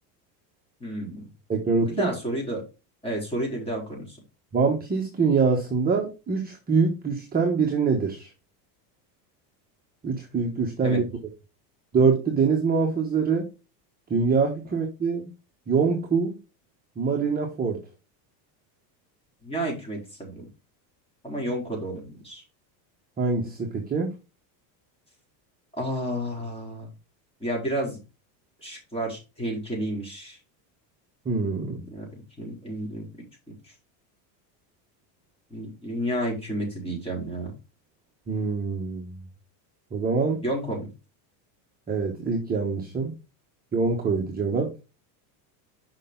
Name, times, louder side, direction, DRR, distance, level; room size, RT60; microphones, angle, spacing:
voice 1, 0.8-1.2 1.9-2.6 3.0-4.2 10.8-11.0 19.4-20.4 21.2-22.4 25.8-26.9 27.4-28.0 28.6-30.4 31.9-33.1 35.5-37.5 40.4-40.9, right 1 dB, 10° left, -2 dB, 4.7 m, -31 dB
voice 2, 1.5-2.1 4.5-8.3 10.0-11.0 11.9-13.5 14.1-15.3 15.7-16.3 17.0-17.8 23.2-24.1 31.2-31.8 38.3-39.2 39.9-40.4 41.9-43.1 43.7-44.7, right 5 dB, 20° right, 1 dB, 1.3 m, -24 dB
6.5 x 5.7 x 3.8 m, 0.28 s
supercardioid pair, 135°, 50 cm